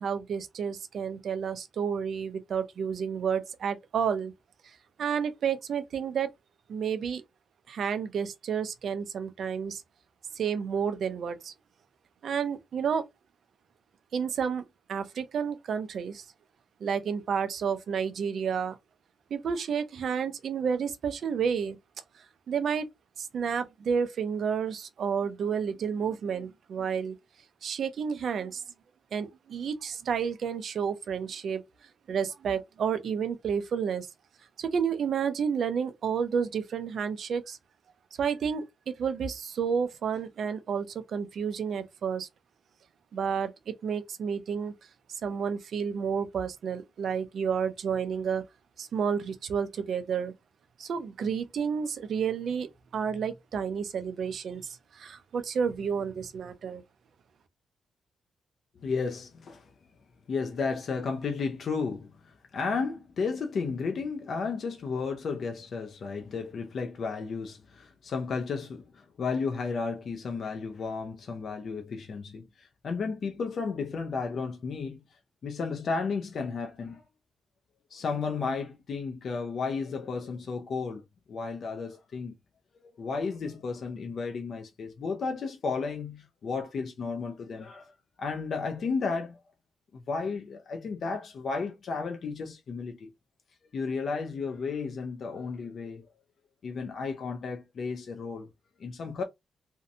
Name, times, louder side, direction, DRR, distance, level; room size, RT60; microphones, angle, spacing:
voice 1, 0.0-4.3 5.0-6.3 6.7-7.2 7.7-9.8 10.4-11.5 12.2-13.0 14.1-14.6 14.9-16.2 16.8-18.8 19.3-21.8 22.5-22.9 23.2-27.1 27.6-28.6 29.1-31.6 32.1-34.1 34.6-37.6 38.2-42.3 43.1-44.7 45.2-48.4 48.8-50.3 50.8-56.8, right 7 dB, 55° right, 0.4 m, -30 dB
voice 2, 58.8-59.7 60.3-75.0 75.4-77.0 77.9-81.0 81.3-82.3 83.0-87.9 88.2-89.4 89.9-93.1 93.7-96.1 96.6-98.5 98.8-99.2, left 4 dB, 45° left, 0.4 m, -33 dB
2.6 x 2.1 x 2.5 m
wide cardioid pair, 175°, 0 cm